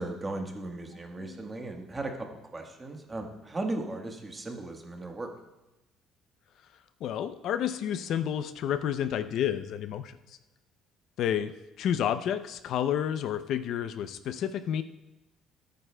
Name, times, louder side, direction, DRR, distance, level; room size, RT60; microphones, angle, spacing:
voice 1, 0.0-2.1 2.5-5.3, right 2 dB, 20° right, 3 dB, 1.3 m, -36 dB
voice 2, 0.9-1.5 7.0-10.2 11.2-14.8, left 9 dB, 60° left, 11 dB, 0.4 m, -30 dB
24.5 x 9.2 x 2.2 m, 0.99 s
cardioid pair, 150°, 0 cm